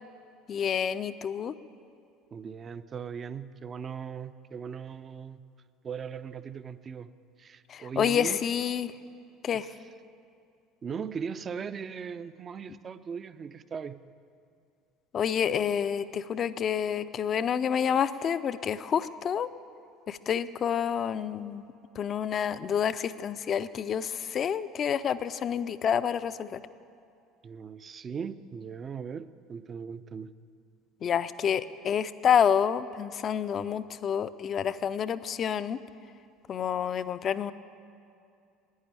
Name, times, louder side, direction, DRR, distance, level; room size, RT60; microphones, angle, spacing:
voice 1, 0.5-1.5 7.7-8.9 9.4-9.7 15.1-19.5 20.1-21.6 22.0-26.6 31.0-35.8 36.5-37.5, left 8 dB, 40° left, 14 dB, 0.4 m, -28 dB
voice 2, 2.3-5.4 5.8-7.1 7.4-8.4 9.5-9.9 10.8-14.0 27.4-30.3, right 6 dB, 35° right, 14 dB, 0.5 m, -39 dB
11.0 x 10.0 x 8.5 m, 2.5 s
figure-of-eight pair, 65°, 0 cm